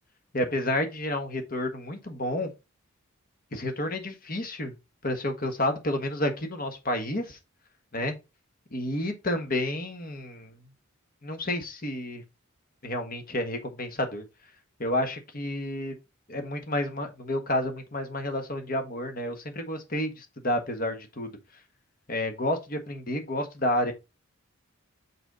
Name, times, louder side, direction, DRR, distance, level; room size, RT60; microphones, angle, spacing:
voice 1, 0.3-2.5 3.5-4.7 5.0-7.4 7.9-8.2 8.7-10.6 11.2-12.2 12.8-14.2 14.8-15.9 16.3-21.3 22.1-23.9, left 1 dB, 45° left, 1.4 m, -30 dB
6.1 x 4.6 x 3.9 m
head